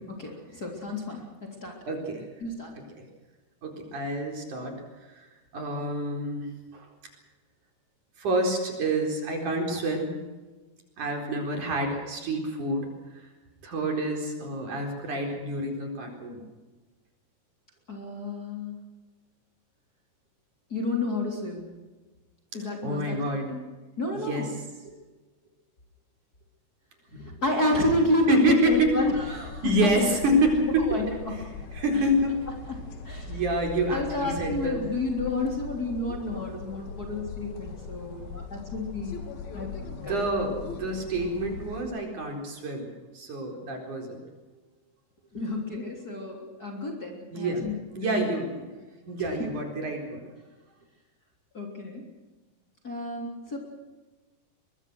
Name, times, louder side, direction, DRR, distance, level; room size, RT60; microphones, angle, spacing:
voice 1, 0.0-1.8 2.4-2.7 17.9-18.8 20.7-21.7 22.5-23.2 23.5-23.6 24.0-24.5 27.1-29.9 30.8-31.0 31.9-32.1 33.1-33.4 33.9-39.2 39.5-39.7 40.0-40.2 45.3-47.7 48.0-48.2 51.5-52.0 52.8-53.6, left 2 dB, 25° left, 0 dB, 3.6 m, -30 dB
voice 2, 1.9-2.3 3.0-3.1 3.6-4.8 5.2-5.3 5.5-6.5 6.7-6.9 8.2-10.1 11.0-13.3 13.6-16.4 22.6-23.6 24.3-24.5 28.3-29.0 29.6-30.9 31.7-32.5 33.3-34.8 39.5-44.2 47.3-47.7 47.9-48.7 49.1-50.2, right 1 dB, 55° right, 2 dB, 5.6 m, -27 dB
sound 1, 28.7-41.8, left 5 dB, 75° left, 4.3 m, -40 dB
22.5 x 22.5 x 6.3 m, 1.2 s
omnidirectional pair, 4.3 m